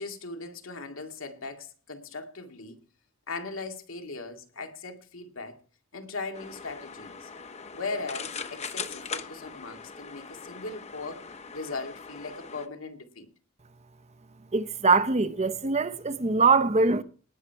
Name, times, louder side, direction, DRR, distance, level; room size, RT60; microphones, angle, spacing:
voice 1, 0.0-2.8 3.3-5.6 5.9-7.3 7.7-11.3 11.5-13.3, left 3 dB, 85° left, 2.2 m, -38 dB
sound 1, 6.3-12.7, left 5 dB, 35° left, 1.0 m, -40 dB
voice 2, 14.5-17.0, right 4 dB, 35° right, 0.8 m, -23 dB
18.5 x 7.4 x 4.6 m
head